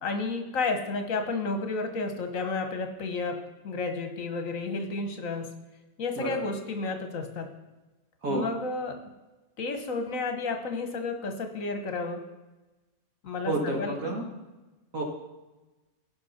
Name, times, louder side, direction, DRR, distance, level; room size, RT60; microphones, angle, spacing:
voice 1, 0.0-5.5 6.0-7.5 8.3-8.9 9.6-12.2 13.2-13.9, left 3 dB, 70° left, 6 dB, 1.5 m, -31 dB
voice 2, 6.2-6.5 8.2-8.5 13.5-14.2 14.9-15.0, right 2 dB, 75° right, 0 dB, 2.3 m, -30 dB
16.0 x 5.7 x 4.2 m, 1.1 s
omnidirectional pair, 1.5 m